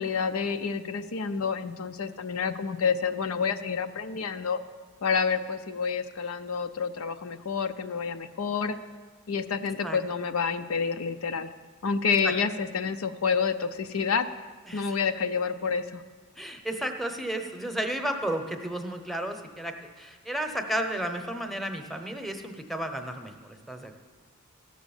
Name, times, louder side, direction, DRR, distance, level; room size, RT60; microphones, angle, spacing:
voice 1, 0.0-4.6 5.0-8.8 9.3-11.5 11.8-14.3 14.7-16.0, left 5 dB, 85° left, 9 dB, 0.6 m, -28 dB
voice 2, 14.7-15.0 16.4-24.0, right 1 dB, ahead, 5 dB, 0.8 m, -33 dB
15.0 x 6.2 x 7.1 m, 1.5 s
head